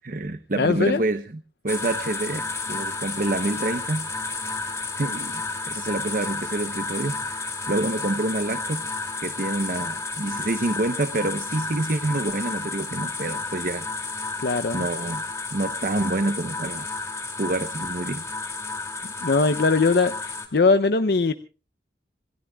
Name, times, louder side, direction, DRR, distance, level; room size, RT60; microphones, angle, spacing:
voice 1, 0.0-4.3 5.0-8.8 9.2-13.9 14.7-15.2 15.5-16.9 17.4-18.2, right 2 dB, 50° right, 11 dB, 0.8 m, -27 dB
voice 2, 0.6-1.0 14.4-14.8 19.2-21.3, left 3 dB, 60° left, 10 dB, 0.6 m, -21 dB
sound 1, 1.7-20.5, left 3 dB, 15° left, 2.6 m, -31 dB
27.0 x 17.0 x 2.3 m, 0.35 s
head